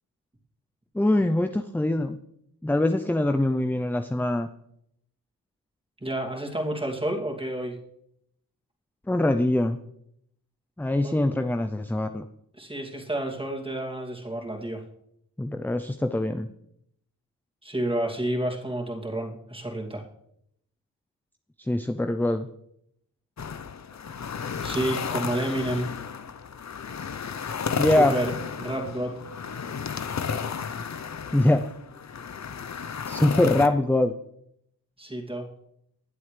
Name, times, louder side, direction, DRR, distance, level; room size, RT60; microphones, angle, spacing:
voice 1, 0.9-2.2 2.6-4.5 9.1-9.8 10.8-12.3 15.4-16.5 21.7-22.5 27.8-28.1 31.3-31.6 33.1-34.1, left 1 dB, 5° left, 7 dB, 0.5 m, -23 dB
voice 2, 6.0-7.7 11.0-11.1 12.6-14.8 17.6-20.0 24.6-25.9 27.8-29.1 35.0-35.5, right 1 dB, 15° right, 0 dB, 2.7 m, -30 dB
sound 1, 23.4-33.7, left 6 dB, 45° left, 0.8 m, -33 dB
21.0 x 7.8 x 3.4 m, 0.75 s
cardioid pair, 70°, 38 cm